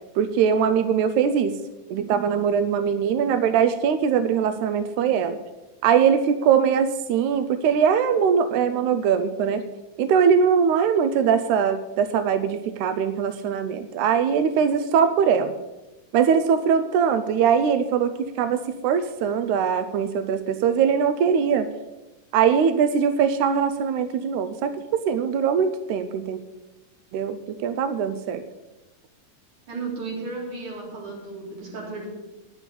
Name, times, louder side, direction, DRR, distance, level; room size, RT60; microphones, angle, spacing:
voice 1, 0.2-1.6 1.9-5.4 5.8-9.6 10.0-15.5 16.1-21.7 22.3-26.4 27.1-28.4, right 7 dB, 80° right, 10 dB, 1.8 m, -21 dB
voice 2, 29.7-32.1, right 3 dB, 65° right, -2 dB, 4.8 m, -34 dB
10.0 x 8.0 x 8.2 m, 1.1 s
omnidirectional pair, 3.8 m